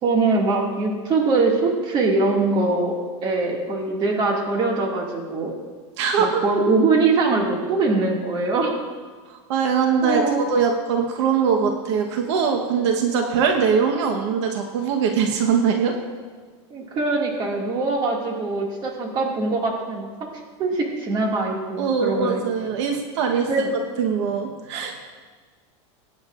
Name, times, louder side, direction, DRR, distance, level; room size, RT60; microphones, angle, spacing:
voice 1, 0.0-5.5 6.2-8.8 10.0-10.5 16.7-20.3 20.6-22.4 23.5-23.7, right 3 dB, 30° right, -1 dB, 2.2 m, -22 dB
voice 2, 6.0-6.4 9.3-15.9 21.8-23.5 24.0-24.9, right 6 dB, 75° right, 3 dB, 1.2 m, -22 dB
21.5 x 9.6 x 2.5 m, 1.5 s
supercardioid pair, 155°, 15 cm